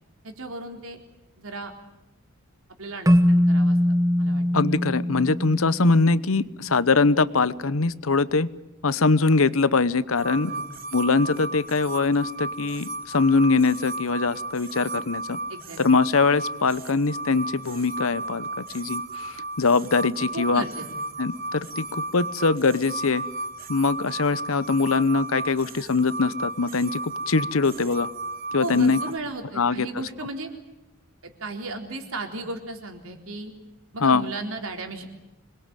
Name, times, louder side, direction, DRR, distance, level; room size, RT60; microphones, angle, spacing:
voice 1, 0.2-1.0 1.4-1.7 2.8-3.8 4.2-4.4 10.4-10.6 15.5-15.8 20.3-20.9 28.6-30.5 31.2-33.5 33.9-35.1, right 2 dB, 75° right, 4 dB, 4.0 m, -35 dB
Keyboard (musical), 3.1-6.3, equal, 15° right, 1.0 m, -21 dB
voice 2, 4.5-8.5 8.8-10.5 10.9-15.4 15.8-18.5 18.7-20.6 21.2-23.2 23.7-28.1 28.5-29.0 29.6-29.9 34.0-34.2, left 4 dB, 75° left, 17 dB, 0.9 m, -22 dB
sound 1, 10.2-29.2, right 2 dB, 40° right, 1.3 m, -34 dB
26.5 x 21.5 x 9.1 m, 0.98 s
head